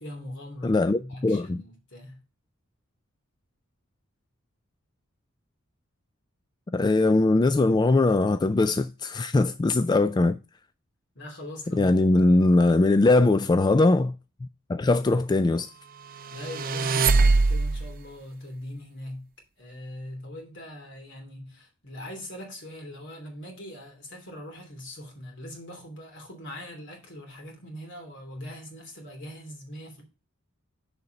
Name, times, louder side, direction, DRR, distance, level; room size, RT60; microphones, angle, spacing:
voice 1, 0.0-2.2 11.1-12.0 16.3-19.3 19.6-30.0, left 1 dB, 60° left, 2.9 m, -41 dB
voice 2, 0.6-1.6 6.7-10.4 11.7-14.1 14.4-15.7, left 2 dB, 20° left, 0.3 m, -21 dB
sound 1, 16.2-18.0, right 3 dB, 45° right, 0.6 m, -22 dB
6.8 x 5.8 x 5.1 m
head